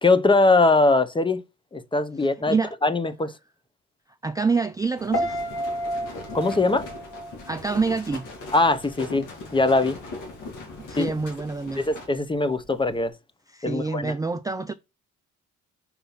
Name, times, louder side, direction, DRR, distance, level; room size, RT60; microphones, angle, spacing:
voice 1, 0.0-1.4 1.7-2.6 2.8-3.3 6.3-6.9 8.5-9.3 9.5-10.0 11.0-11.1 11.8-13.1 13.6-14.1, left 3 dB, 15° left, 0.7 m, -21 dB
voice 2, 2.2-2.7 4.2-5.4 7.5-8.3 10.9-11.8 13.5-14.7, right 4 dB, 10° right, 0.4 m, -27 dB
sound 1, 5.0-12.1, left 2 dB, 85° left, 2.0 m, -39 dB
Piano, 5.1-8.2 8.5-8.9, equal, 45° left, 2.5 m, -31 dB
5.6 x 4.2 x 5.6 m
cardioid pair, 90°, 30 cm